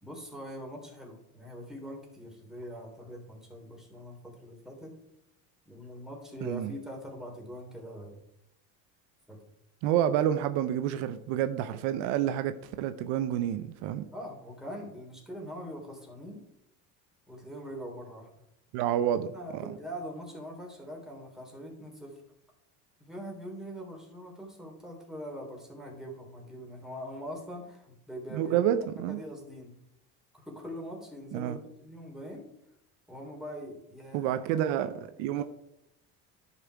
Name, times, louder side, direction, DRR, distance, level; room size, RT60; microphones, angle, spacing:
voice 1, 0.0-4.9 5.7-8.2 9.3-9.4 14.1-16.4 17.3-18.3 19.3-22.2 23.0-28.6 29.1-29.7 30.3-32.4 33.1-34.4 35.2-35.4, equal, ahead, 3.5 m, -42 dB
voice 2, 6.4-6.7 9.8-14.0 18.7-19.6 28.3-29.2 31.3-31.6 34.1-35.4, right 11 dB, 75° right, 0.8 m, -29 dB
11.0 x 5.8 x 4.7 m
supercardioid pair, 95°, 45 cm